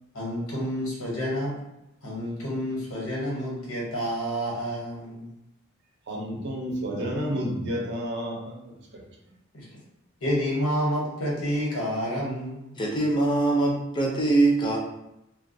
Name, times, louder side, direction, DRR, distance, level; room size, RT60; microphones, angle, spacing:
voice 1, 0.1-1.6 2.0-5.3 9.5-9.6 10.2-12.7, equal, 90° left, -5 dB, 1.0 m, -29 dB
voice 2, 6.1-9.0, equal, 55° right, -1 dB, 0.5 m, -31 dB
voice 3, 12.8-14.8, right 2 dB, 20° left, -1 dB, 0.4 m, -22 dB
2.2 x 2.2 x 2.6 m, 0.88 s
head